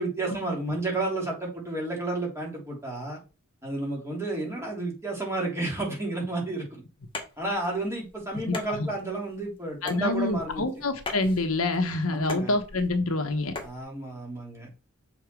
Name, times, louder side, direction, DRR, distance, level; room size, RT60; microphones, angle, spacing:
voice 1, 0.0-3.2 3.6-6.8 7.4-10.6 12.1-12.5 13.6-14.7, right 2 dB, 15° right, 3.2 m, -31 dB
sound 1, 7.0-13.8, left 3 dB, 25° left, 1.8 m, -42 dB
voice 2, 8.4-8.9 9.8-13.6, left 2 dB, 70° left, 1.2 m, -27 dB
7.0 x 4.4 x 6.1 m
head